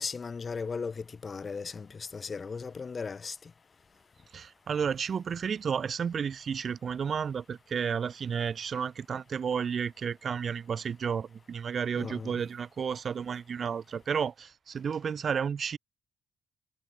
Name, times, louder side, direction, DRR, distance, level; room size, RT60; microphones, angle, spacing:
voice 1, 0.0-3.4 11.9-12.4, left 5 dB, 35° left, 3.2 m, -37 dB
voice 2, 4.3-15.8, right 7 dB, 50° right, 1.3 m, -32 dB
cardioid pair, 90°, 0 cm